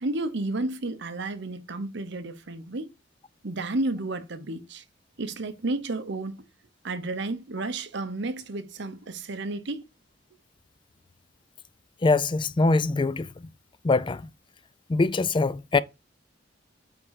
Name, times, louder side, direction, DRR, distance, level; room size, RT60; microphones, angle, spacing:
voice 1, 0.0-2.9 3.4-4.8 5.2-6.4 6.8-9.8, right 2 dB, 65° right, 0.9 m, -32 dB
voice 2, 12.0-13.3 13.8-14.3 14.9-15.8, left 3 dB, 25° left, 0.4 m, -23 dB
8.5 x 3.7 x 4.8 m
head